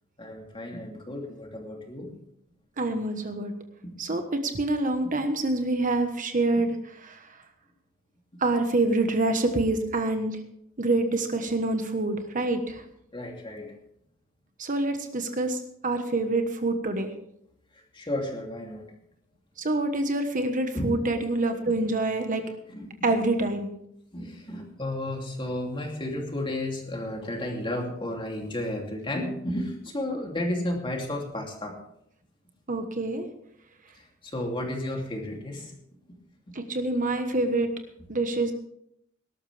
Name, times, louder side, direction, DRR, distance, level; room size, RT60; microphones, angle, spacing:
voice 1, 0.2-2.2 3.8-3.9 13.1-13.7 17.9-18.8 20.7-21.1 21.7-21.8 22.7-23.1 24.1-31.8 34.2-35.7, left 1 dB, 25° left, 1 dB, 2.9 m, -32 dB
voice 2, 2.8-3.5 4.0-6.8 7.0-7.3 8.4-10.4 10.8-12.8 14.6-17.1 19.6-22.4 23.0-23.7 32.7-33.2 36.5-37.7 38.1-38.5, right 2 dB, 40° right, 6 dB, 1.3 m, -26 dB
19.0 x 12.5 x 3.4 m, 0.72 s
head